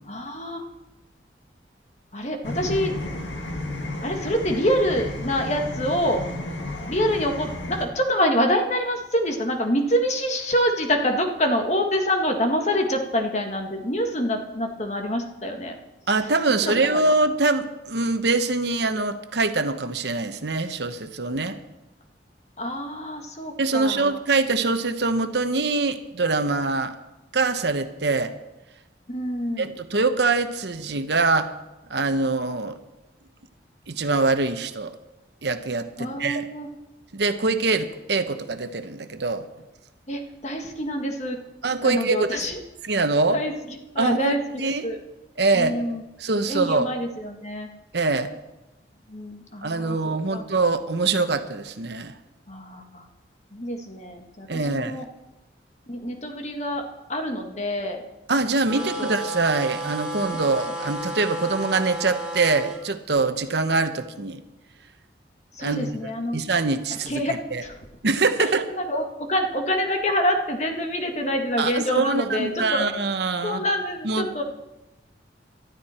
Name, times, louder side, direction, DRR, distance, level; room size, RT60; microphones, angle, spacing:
voice 1, 0.1-0.6 2.1-3.0 4.0-6.2 6.9-15.8 16.6-17.1 22.6-24.2 29.1-29.7 36.0-36.7 40.1-41.4 41.8-42.6 43.3-43.5 43.9-45.0 45.5-46.0 46.5-47.7 49.1-50.5 52.5-53.0 53.5-55.1 55.9-58.0 59.0-59.1 60.3-60.4 65.6-66.4 66.9-67.7 68.4-72.9 73.4-74.4, equal, 35° left, 4 dB, 1.7 m, -26 dB
sound 1, 2.4-7.8, left 1 dB, 90° left, 2.4 m, -32 dB
voice 2, 16.1-21.6 23.6-27.0 27.3-28.3 29.6-31.5 31.9-32.8 33.9-34.9 35.4-36.5 37.1-39.5 41.6-42.4 42.8-43.4 44.0-44.9 45.4-45.8 46.2-46.9 47.9-48.3 49.6-52.1 54.5-55.0 58.3-64.4 65.6-65.9 66.3-67.6 68.0-68.7 71.6-73.7 74.0-74.4, right 3 dB, 65° right, 9 dB, 1.0 m, -24 dB
sound 2, 58.7-62.8, right 1 dB, 5° right, 2.0 m, -32 dB
19.0 x 12.5 x 4.4 m, 0.99 s
head